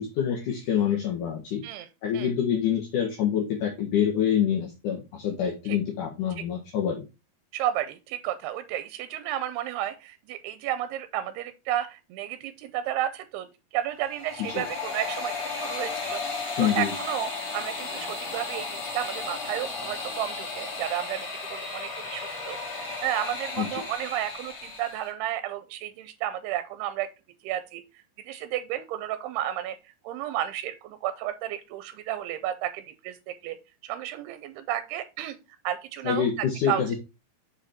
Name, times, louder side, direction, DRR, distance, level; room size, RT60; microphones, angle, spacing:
voice 1, 0.0-1.6 2.0-7.0 14.5-14.6 16.6-16.9 23.6-23.8 36.0-37.0, left 9 dB, 65° left, -1 dB, 2.3 m, -26 dB
voice 2, 7.5-27.1 27.4-27.8 28.2-33.6 33.8-35.4 35.6-36.3 36.6-37.0, right 12 dB, 85° right, 12 dB, 2.6 m, -32 dB
sound 1, 14.0-25.1, left 4 dB, 50° left, 3.0 m, -34 dB
6.4 x 4.9 x 4.2 m, 0.27 s
omnidirectional pair, 4.6 m